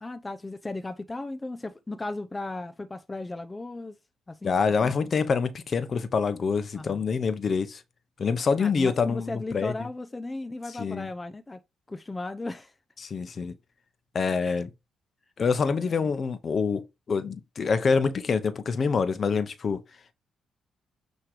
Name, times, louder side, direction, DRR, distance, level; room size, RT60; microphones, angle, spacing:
voice 1, 0.0-4.0 4.3-5.1 6.7-7.0 8.6-11.6 11.9-12.7 14.4-14.6, left 2 dB, 20° left, 0.7 m, -36 dB
voice 2, 4.4-7.8 8.2-9.7 10.8-11.1 13.0-13.5 14.1-14.7 15.4-19.8, left 5 dB, 45° left, 1.0 m, -26 dB
8.9 x 3.2 x 4.9 m
cardioid pair, 90°, 0 cm